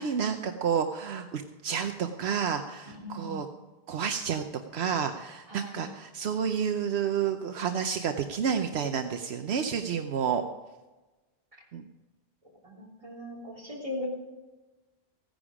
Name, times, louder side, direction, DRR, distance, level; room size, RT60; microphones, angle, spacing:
voice 1, 0.0-3.5 3.9-4.4 4.7-10.4 11.7-11.8, right 7 dB, 75° right, 6 dB, 1.0 m, -30 dB
voice 2, 2.8-3.4 5.5-5.8 12.6-14.1, left 2 dB, 30° right, -3 dB, 3.5 m, -39 dB
15.5 x 10.5 x 5.0 m, 1.2 s
omnidirectional pair, 1.1 m